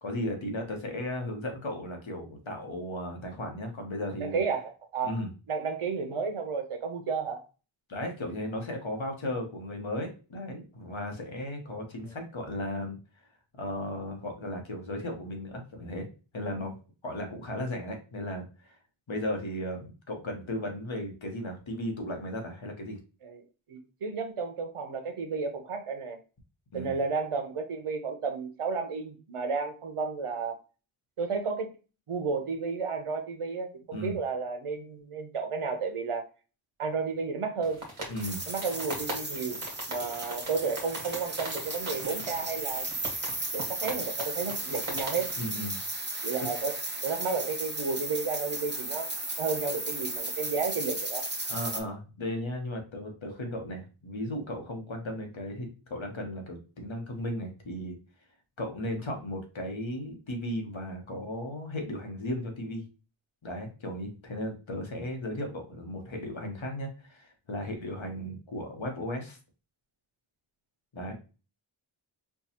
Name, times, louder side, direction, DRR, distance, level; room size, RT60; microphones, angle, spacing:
voice 1, 0.0-4.4 5.0-5.3 7.9-13.0 13.6-16.1 16.3-16.8 17.0-18.8 19.1-23.0 26.7-26.9 33.9-34.2 38.1-38.4 45.4-45.8 51.5-58.0 58.6-62.8 63.4-69.4 70.9-71.1, left 1 dB, 65° left, 1.1 m, -35 dB
voice 2, 4.2-5.2 5.5-7.5 23.2-23.4 23.7-26.2 26.7-30.6 31.2-31.7 32.1-36.3 36.8-37.8 38.5-39.6 39.9-42.9 43.5-45.3 46.2-46.8 47.0-49.1 49.4-51.3, right 5 dB, 90° right, 0.7 m, -32 dB
sound 1, 37.6-45.4, right 1 dB, 70° right, 1.2 m, -41 dB
sound 2, 38.2-51.8, right 2 dB, 20° right, 0.8 m, -35 dB
4.6 x 2.3 x 2.8 m
wide cardioid pair, 40°, 50 cm